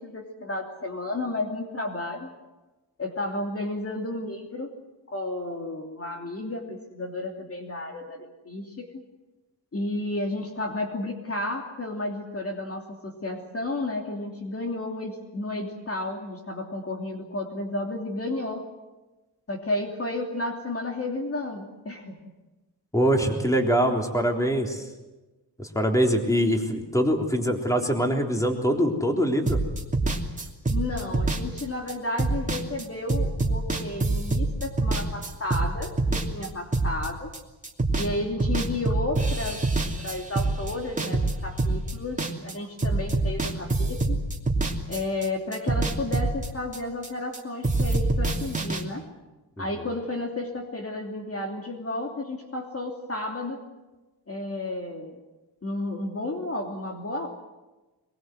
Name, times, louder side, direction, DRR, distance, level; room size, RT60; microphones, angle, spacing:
voice 1, 0.0-2.3 3.0-4.7 5.1-9.0 9.7-18.7 19.5-22.1 30.7-37.3 38.0-39.6 40.0-44.2 44.9-49.1 49.6-53.6 54.3-55.2 55.6-57.3, left 2 dB, 35° left, 2 dB, 2.9 m, -32 dB
voice 2, 22.9-24.9 25.6-29.6 49.6-49.7, equal, 10° left, 2 dB, 3.7 m, -23 dB
sound 1, 29.5-38.1 38.4-42.5 42.8-45.3 45.5-47.4 47.6-48.8, right 2 dB, 20° right, 2.8 m, -26 dB
23.5 x 22.5 x 7.8 m, 1.1 s
wide cardioid pair, 120°, 42 cm